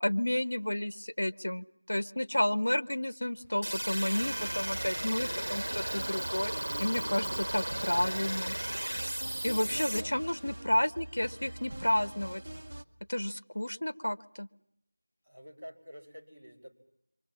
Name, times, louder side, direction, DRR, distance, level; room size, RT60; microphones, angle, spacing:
voice 1, 0.0-6.5 6.8-8.6 9.4-12.4 13.1-14.5, left 1 dB, 75° left, 11 dB, 1.0 m, -31 dB
sound 1, 3.2-11.0, equal, 15° left, 5.4 m, -56 dB
sound 2, 3.6-10.0, right 1 dB, 70° right, 1.3 m, -35 dB
sound 3, 4.2-12.8, right 1 dB, 50° right, 1.2 m, -44 dB
voice 2, 9.4-10.1 13.6-13.7 15.2-16.7, equal, ahead, -19 dB, 3.3 m, -49 dB
28.0 x 24.0 x 7.3 m, 0.80 s
figure-of-eight pair, 175°, 0 cm